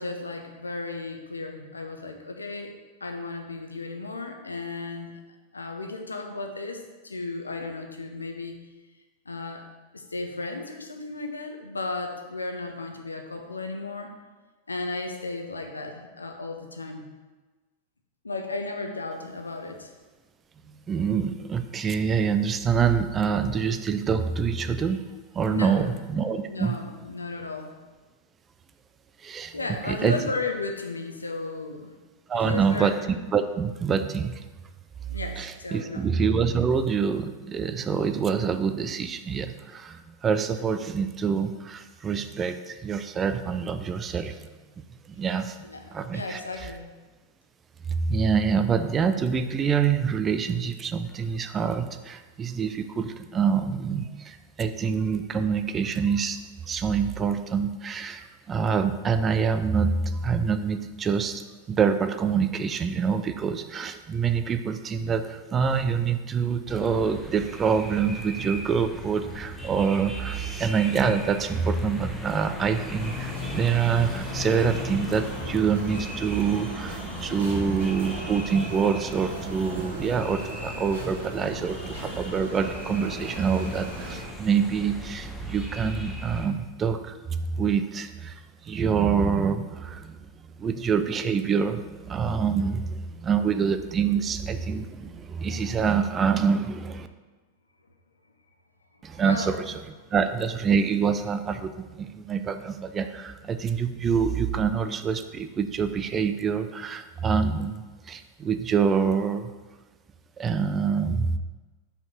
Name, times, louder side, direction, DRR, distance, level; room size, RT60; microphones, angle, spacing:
voice 1, 0.0-2.7 3.0-5.1 5.5-8.6 9.2-9.7 9.9-14.1 14.7-17.1 18.2-19.9 25.5-25.9 26.5-27.7 29.5-31.9 32.3-33.0 35.1-36.0 45.6-46.9 99.1-99.5 100.0-100.1, left 3 dB, 80° left, 4 dB, 0.8 m, -34 dB
voice 2, 20.9-25.0 25.3-26.8 29.2-29.5 29.9-30.2 32.3-33.0 33.3-34.4 35.4-44.4 45.1-45.6 45.9-46.4 47.9-56.4 56.7-61.4 61.7-88.4 88.7-90.2 90.6-97.1 99.0-99.6 100.1-109.5 110.4-111.4, right 6 dB, 25° right, 10 dB, 0.5 m, -26 dB
sound 1, 66.7-86.5, left 1 dB, ahead, 0.9 m, -38 dB
sound 2, 73.0-84.2, right 1 dB, 65° right, 1.6 m, -38 dB
5.4 x 4.5 x 5.9 m, 1.3 s
figure-of-eight pair, 90°, 0 cm